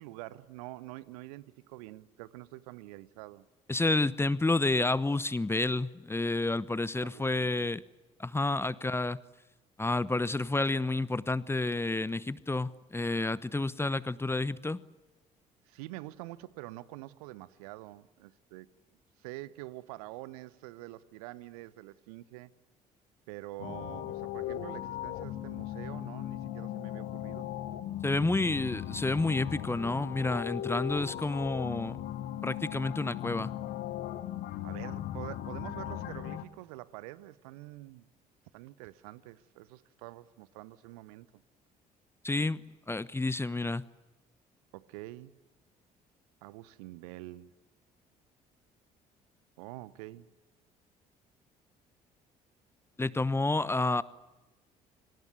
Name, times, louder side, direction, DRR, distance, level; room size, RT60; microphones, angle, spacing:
voice 1, 0.0-3.4 7.0-7.7 15.7-18.7 19.2-22.5 23.3-27.5 34.6-38.1 38.5-41.3 44.7-45.4 46.4-47.5 49.6-50.3, right 18 dB, 65° right, 1.0 m, -46 dB
voice 2, 3.7-7.8 8.2-9.2 9.8-14.8 28.0-32.0 32.4-33.5 42.2-43.9 53.0-54.0, left 2 dB, 10° left, 1.0 m, -30 dB
sound 1, 23.6-36.4, left 12 dB, 55° left, 1.6 m, -38 dB
27.5 x 26.0 x 8.1 m
figure-of-eight pair, 50°, 20 cm